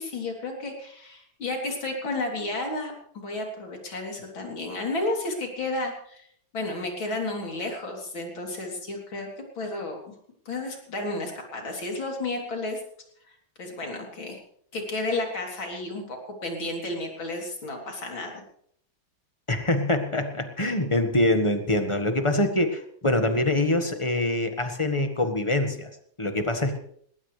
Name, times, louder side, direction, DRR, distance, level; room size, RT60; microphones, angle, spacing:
voice 1, 0.0-6.2 6.5-9.3 9.6-10.0 10.5-12.8 13.6-14.4 14.7-18.3, left 2 dB, 90° left, 1 dB, 4.1 m, -32 dB
voice 2, 19.5-25.9 26.2-26.8, left 1 dB, 15° left, 6 dB, 1.3 m, -24 dB
19.5 x 18.0 x 3.3 m, 0.65 s
omnidirectional pair, 2.1 m